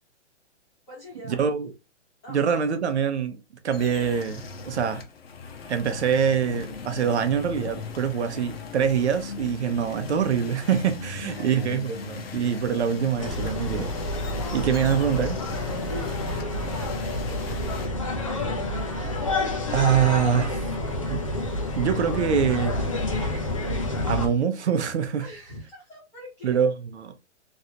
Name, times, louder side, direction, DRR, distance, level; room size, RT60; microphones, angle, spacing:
voice 1, 0.9-1.4 2.2-2.4 2.7-2.8 11.0-11.9 15.9-18.2 25.2-26.6, equal, 10° left, 0.9 m, -45 dB
voice 2, 1.4-1.7 2.3-3.4 3.6-5.0 5.7-13.9 14.5-15.4 19.7-20.6 21.1-21.2 21.8-22.8 24.1-25.3 26.4-27.1, right 7 dB, 70° right, 0.8 m, -24 dB
sound 1, 3.7-17.9, left 6 dB, 55° left, 0.8 m, -38 dB
sound 2, 13.2-24.3, left 1 dB, 30° left, 0.5 m, -28 dB
3.1 x 2.7 x 2.7 m
hypercardioid pair, 180°, 35 cm